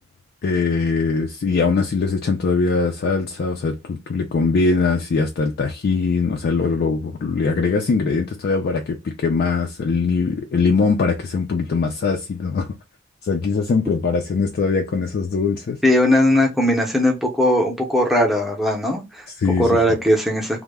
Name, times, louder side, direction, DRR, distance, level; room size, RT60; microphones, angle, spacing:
voice 1, 0.4-12.7 13.2-15.8 19.4-19.7, left 4 dB, 50° left, 0.3 m, -21 dB
voice 2, 15.8-19.3 19.6-20.6, left 1 dB, ahead, 0.6 m, -18 dB
2.2 x 2.0 x 3.3 m
head